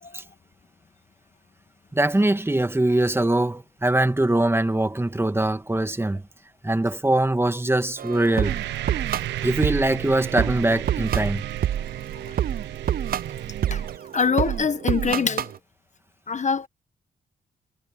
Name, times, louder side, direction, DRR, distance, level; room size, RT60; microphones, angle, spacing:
voice 1, 1.9-6.3 6.6-8.6 9.4-11.5, right 1 dB, 15° right, 2.2 m, -22 dB
sound 1, 8.0-15.6, right 10 dB, 55° right, 0.6 m, -28 dB
sound 2, 8.4-14.0, right 14 dB, 90° right, 1.0 m, -34 dB
voice 2, 14.1-15.5 16.3-16.7, left 5 dB, 40° left, 1.2 m, -24 dB
supercardioid pair, 60°, 18 cm